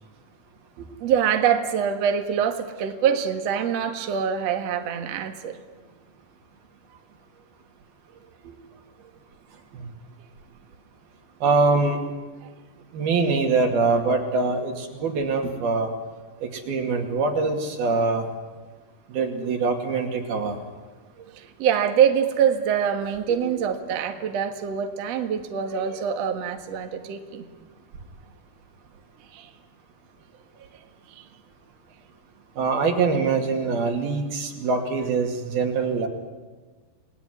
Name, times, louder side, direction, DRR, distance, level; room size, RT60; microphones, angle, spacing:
voice 1, 1.0-5.6 21.3-27.4 29.3-29.5 31.1-31.2, right 8 dB, 50° right, 5 dB, 2.3 m, -24 dB
voice 2, 11.4-12.0 12.9-15.9 16.4-18.3 19.1-20.6 32.6-36.1, right 4 dB, 65° right, 3 dB, 4.1 m, -23 dB
29.5 x 19.5 x 9.7 m, 1.3 s
omnidirectional pair, 4.8 m